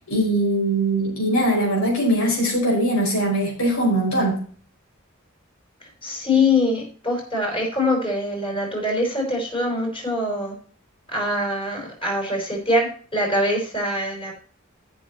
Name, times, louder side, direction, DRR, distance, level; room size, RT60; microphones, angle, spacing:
voice 1, 0.1-4.4, right 1 dB, 80° left, -1 dB, 5.2 m, -21 dB
voice 2, 5.8-10.5 11.1-14.3, left 2 dB, 25° left, 0 dB, 4.9 m, -23 dB
13.0 x 6.6 x 4.2 m, 0.43 s
head